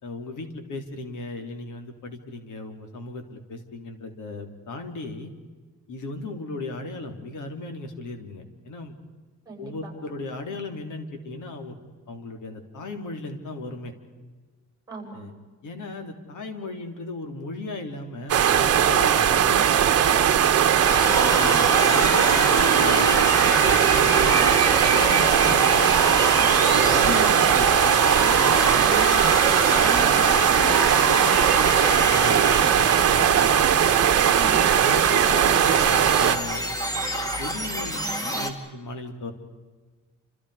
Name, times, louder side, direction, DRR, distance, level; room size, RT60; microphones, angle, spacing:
voice 1, 0.0-5.3 5.9-8.9 9.6-11.7 12.1-13.9 15.1-15.3 15.6-20.4 21.1-26.0 26.6-27.7 28.4-28.8 29.5-29.7 30.5-33.6 34.8-36.6 37.4-39.3, left 3 dB, 80° left, 5 dB, 3.7 m, -36 dB
voice 2, 9.5-9.9 14.9-15.2 28.7-29.5 29.8-30.2 34.3-34.6, right 3 dB, 10° right, 0 dB, 8.0 m, -36 dB
sound 1, 18.3-36.4, right 9 dB, 50° right, 1.3 m, -19 dB
sound 2, 20.9-38.5, right 1 dB, 10° left, 2.3 m, -26 dB
30.0 x 27.5 x 5.1 m, 1.4 s
wide cardioid pair, 175°, 30 cm